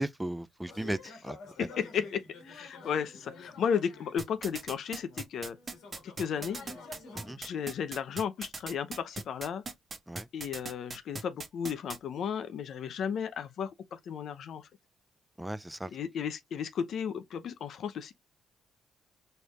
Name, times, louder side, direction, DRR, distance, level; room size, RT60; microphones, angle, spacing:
voice 1, 0.0-1.4 7.1-7.4 10.1-10.3 15.4-15.9, right 1 dB, 5° right, 0.3 m, -36 dB
sound 1, 0.7-4.6 5.1-7.4, left 3 dB, 80° left, 1.7 m, -49 dB
voice 2, 1.6-5.6 6.0-6.6 7.4-9.6 10.3-14.7 15.9-18.1, left 7 dB, 65° left, 0.6 m, -34 dB
sound 2, 4.2-12.0, right 3 dB, 35° right, 1.1 m, -39 dB
4.4 x 3.3 x 2.4 m
cardioid pair, 90°, 0 cm